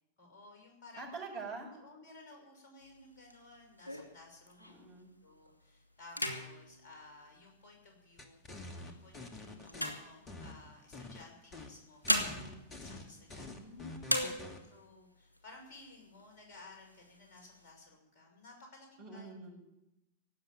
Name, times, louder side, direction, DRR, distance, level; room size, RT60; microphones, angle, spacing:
voice 1, 0.2-1.1 1.8-4.8 5.2-12.1 12.4-12.5 12.8-13.5 14.6-19.3, left 2 dB, 45° left, 1 dB, 5.6 m, -56 dB
voice 2, 1.0-1.7 4.6-5.1 12.0-12.6 13.4-14.5 19.0-19.6, right 3 dB, 45° right, -2 dB, 7.7 m, -46 dB
sound 1, 2.8-5.0 5.5-5.7 6.0-8.0 8.6-10.8 11.7-13.7 14.0-14.9 15.3-15.4 15.7-16.4 16.8-17.7, left 1 dB, 80° left, 2.6 m, -38 dB
sound 2, 8.2-9.9 10.3-11.2 11.5-11.7 12.0-14.6, left 2 dB, 25° left, 2.4 m, -47 dB
17.5 x 8.1 x 9.5 m, 0.90 s
figure-of-eight pair, 90°, 0 cm